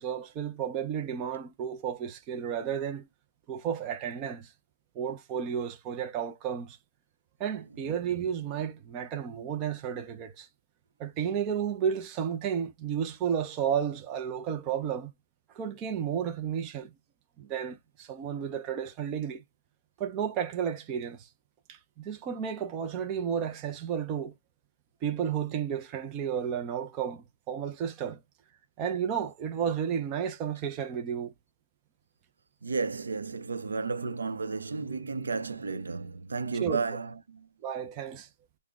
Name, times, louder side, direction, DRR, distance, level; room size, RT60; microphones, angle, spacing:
voice 1, 0.0-3.1 3.5-4.5 5.0-6.8 7.4-10.5 11.0-15.1 15.5-16.9 17.4-19.4 20.0-21.3 21.7-24.3 25.0-28.2 28.8-31.3 36.6-36.8 37.6-38.3, right 8 dB, 15° right, 0.3 m, -32 dB
voice 2, 32.6-37.5, right 4 dB, 90° right, 0.6 m, -33 dB
3.7 x 2.0 x 3.4 m
hypercardioid pair, 175°, 0 cm